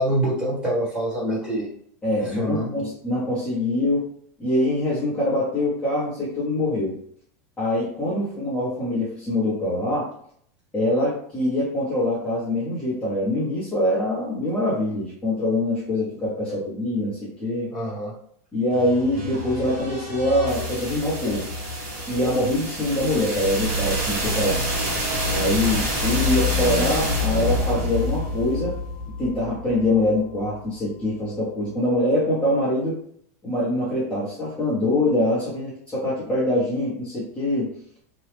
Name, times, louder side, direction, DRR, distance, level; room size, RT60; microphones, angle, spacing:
voice 1, 0.0-1.7 2.2-2.7 17.7-18.1, right 1 dB, 10° right, -7 dB, 1.5 m, -25 dB
voice 2, 2.0-4.0 4.4-7.0 7.6-10.1 10.7-17.7 18.5-21.5 22.1-24.6 25.3-28.7 29.2-33.0 33.4-37.7, left 1 dB, 10° left, -9 dB, 0.9 m, -24 dB
sound 1, 18.7-30.6, left 1 dB, 60° right, 1.5 m, -27 dB
2.9 x 2.3 x 3.3 m, 0.64 s
supercardioid pair, 150°, 9 cm